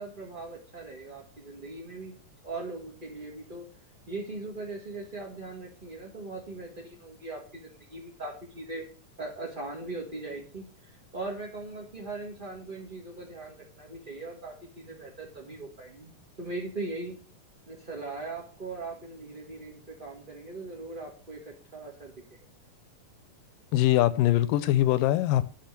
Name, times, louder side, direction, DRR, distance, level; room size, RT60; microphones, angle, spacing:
voice 1, 0.0-2.1 2.4-3.6 4.1-8.8 9.2-16.1 16.4-17.2 17.7-22.4, right 2 dB, 25° right, 1.2 m, -40 dB
voice 2, 23.7-25.4, left 14 dB, 80° left, 2.3 m, -22 dB
10.5 x 6.5 x 6.6 m
omnidirectional pair, 4.0 m